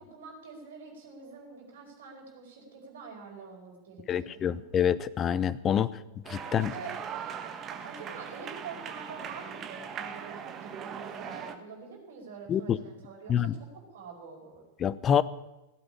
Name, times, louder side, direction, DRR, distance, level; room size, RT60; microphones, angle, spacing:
voice 1, 0.0-4.6 6.4-7.0 7.7-14.6, right 5 dB, 60° right, 1 dB, 5.0 m, -46 dB
voice 2, 4.1-5.9 6.3-6.7 12.5-12.8 13.3-13.5 14.8-15.2, left 9 dB, 25° left, 17 dB, 0.7 m, -26 dB
sound 1, 6.2-11.5, right 7 dB, 30° right, 1.4 m, -40 dB
16.5 x 8.8 x 9.8 m, 0.99 s
figure-of-eight pair, 90°, 0 cm